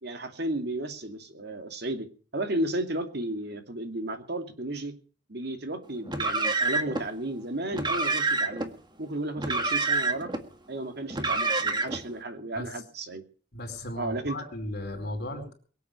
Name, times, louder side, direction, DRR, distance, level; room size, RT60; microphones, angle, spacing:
voice 1, 0.0-2.1 2.3-4.9 5.3-8.7 9.0-10.3 10.7-13.2 14.0-14.4, right 1 dB, 60° right, 7 dB, 2.5 m, -33 dB
Car, 6.1-7.0 7.7-8.7 9.4-10.4 11.1-12.0, right 3 dB, 25° right, 1.8 m, -27 dB
voice 2, 13.5-15.5, left 1 dB, 60° left, 6 dB, 4.7 m, -36 dB
23.0 x 8.3 x 6.7 m, 0.41 s
head